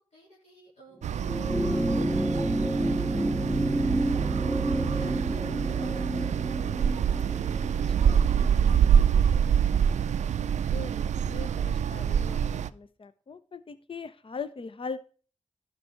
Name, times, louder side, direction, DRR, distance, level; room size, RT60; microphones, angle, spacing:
voice 1, 0.1-8.8 9.6-9.8, left 1 dB, 70° left, -6 dB, 3.8 m, -56 dB
sound 1, 1.0-12.7, right 8 dB, 85° right, 0.4 m, -26 dB
sound 2, 1.2-9.9 11.1-11.2, right 1 dB, ahead, 0.4 m, -30 dB
voice 2, 10.7-12.4 12.7-15.0, left 5 dB, 50° left, 14 dB, 0.7 m, -40 dB
11.5 x 5.4 x 4.5 m, 0.39 s
cardioid pair, 40°, 12 cm